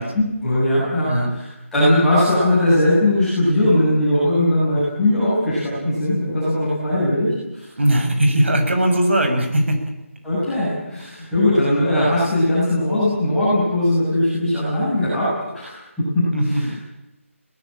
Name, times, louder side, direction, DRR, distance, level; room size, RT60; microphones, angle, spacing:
voice 1, 0.1-1.5 1.7-7.6 10.2-15.3 15.5-15.7 16.0-16.7, left 1 dB, ahead, -14 dB, 8.0 m, -19 dB
voice 2, 7.8-9.8 16.3-16.7, right 1 dB, 55° right, 5 dB, 6.9 m, -19 dB
21.0 x 19.5 x 8.9 m, 0.95 s
figure-of-eight pair, 175°, 8 cm